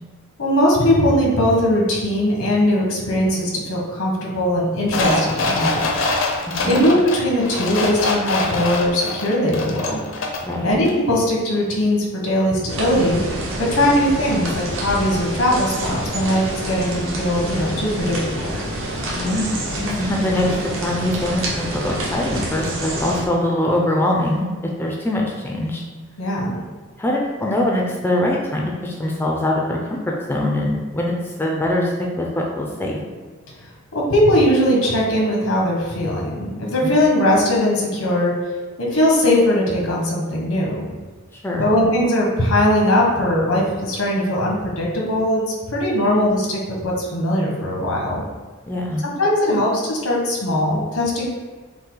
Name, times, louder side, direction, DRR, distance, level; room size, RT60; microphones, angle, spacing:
voice 1, 0.4-5.8 6.6-10.0 10.6-13.2 13.6-18.6 26.2-26.6 33.9-38.3 38.8-40.9 41.6-48.2 49.0-51.3, left 1 dB, 90° left, -2 dB, 1.2 m, -20 dB
sound 1, 4.9-10.5 10.9-11.0, left 2 dB, 65° left, 0.6 m, -24 dB
voice 2, 6.4-6.8 10.4-10.7 19.1-19.5 19.8-24.5 24.8-25.8 27.0-33.0 36.8-36.9 41.4-41.7 48.7-49.0, left 1 dB, 10° left, -1 dB, 0.4 m, -23 dB
sound 2, 12.7-23.2, right 1 dB, 65° right, 0.9 m, -27 dB
5.3 x 2.2 x 3.8 m, 1.4 s
head